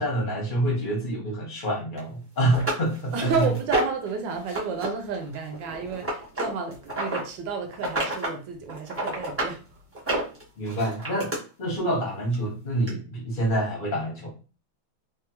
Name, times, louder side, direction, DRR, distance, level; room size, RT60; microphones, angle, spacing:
voice 1, 0.0-3.3 10.6-11.3 11.6-14.3, right 1 dB, 50° left, 0.6 m, -27 dB
sound 1, 2.0-2.1 2.5-4.1 4.5-4.9 5.1-7.2 7.7-8.4 8.7-9.5 9.9-11.4 12.3-12.4 12.9-13.0, right 1 dB, 15° right, 0.5 m, -29 dB
voice 2, 3.1-9.6, right 4 dB, 75° right, 1.2 m, -31 dB
3.2 x 2.3 x 2.9 m
omnidirectional pair, 2.2 m